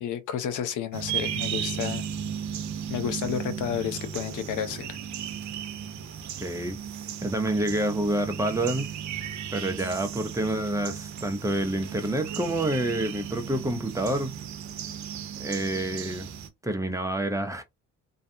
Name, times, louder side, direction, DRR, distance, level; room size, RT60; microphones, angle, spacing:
voice 1, 0.0-2.1 2.9-5.0, left 9 dB, 80° left, 0.6 m, -31 dB
sound 1, 0.9-16.5, right 8 dB, 70° right, 0.6 m, -35 dB
voice 2, 6.4-6.8 7.2-8.9 9.5-14.3 15.4-16.3 16.6-17.6, right 1 dB, 10° right, 0.5 m, -28 dB
2.6 x 2.3 x 2.5 m
cardioid pair, 90°, 30 cm